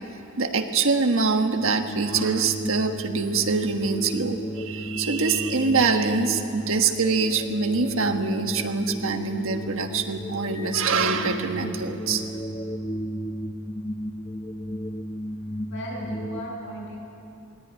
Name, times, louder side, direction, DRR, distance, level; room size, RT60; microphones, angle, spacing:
voice 1, 0.4-12.2, right 4 dB, 65° right, 5 dB, 1.4 m, -24 dB
sound 1, 1.6-16.4, equal, 20° left, 0.7 m, -34 dB
voice 2, 15.7-17.0, equal, 60° left, -4 dB, 7.5 m, -35 dB
20.0 x 17.5 x 9.8 m, 2.7 s
head